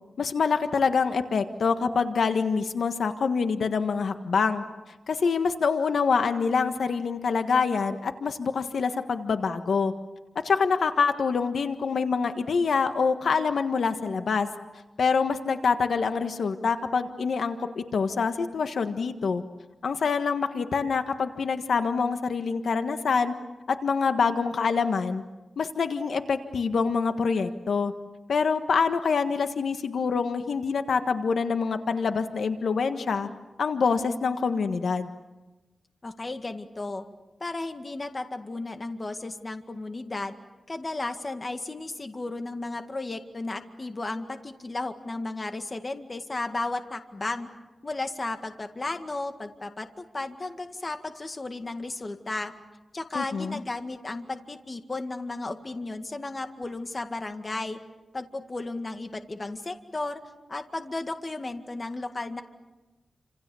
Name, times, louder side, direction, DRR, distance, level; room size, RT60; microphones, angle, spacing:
voice 1, 0.2-4.6 5.1-9.9 10.4-14.5 15.0-19.4 19.8-23.3 23.7-25.2 25.6-27.9 28.3-33.3 33.6-35.1 53.1-53.6, left 5 dB, 80° left, 8 dB, 1.5 m, -26 dB
voice 2, 36.0-37.1 37.4-40.3 40.7-47.5 47.8-52.5 52.9-57.8 58.1-60.2 60.5-62.4, left 2 dB, 30° left, 6 dB, 2.0 m, -34 dB
29.5 x 27.0 x 7.1 m, 1.1 s
wide cardioid pair, 130°, 0 cm